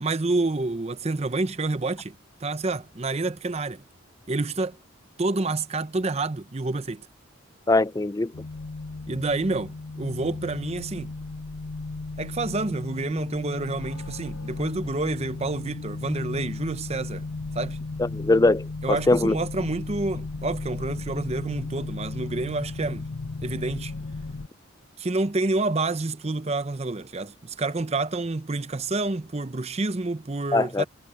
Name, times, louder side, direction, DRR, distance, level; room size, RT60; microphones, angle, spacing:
voice 1, 0.0-2.1 2.4-3.8 4.3-4.8 5.2-7.1 9.1-11.1 12.2-17.3 17.6-17.8 18.8-23.1 23.4-23.9 25.0-30.8, right 2 dB, 30° right, 0.7 m, -28 dB
voice 2, 7.7-8.3 18.0-19.4 30.5-30.8, left 2 dB, 15° left, 0.4 m, -21 dB
sound 1, 8.3-24.5, left 3 dB, 80° left, 1.0 m, -35 dB
head